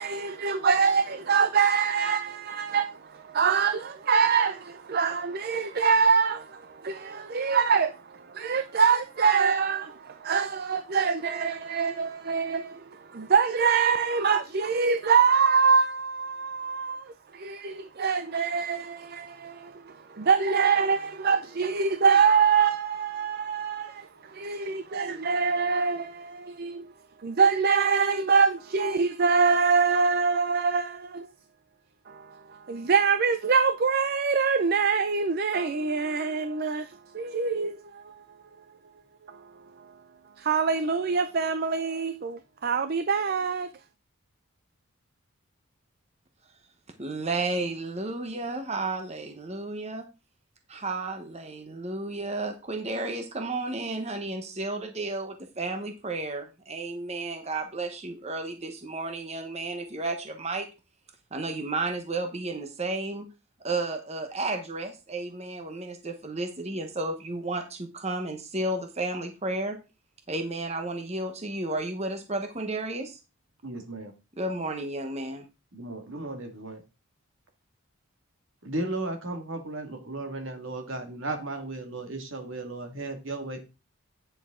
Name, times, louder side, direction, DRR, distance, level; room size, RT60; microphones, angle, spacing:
voice 1, 0.0-26.9 27.2-31.3 32.1-38.2 39.3-39.4 40.4-43.7, right 5 dB, 45° right, 0.5 m, -25 dB
voice 2, 47.0-50.1 50.7-60.7 61.3-63.3 63.6-69.8 70.3-73.2 74.4-75.4, right 2 dB, 30° right, 1.0 m, -32 dB
voice 3, 73.6-74.1 75.7-76.8 78.6-83.6, right 2 dB, 60° right, 2.1 m, -35 dB
9.4 x 6.8 x 3.7 m
head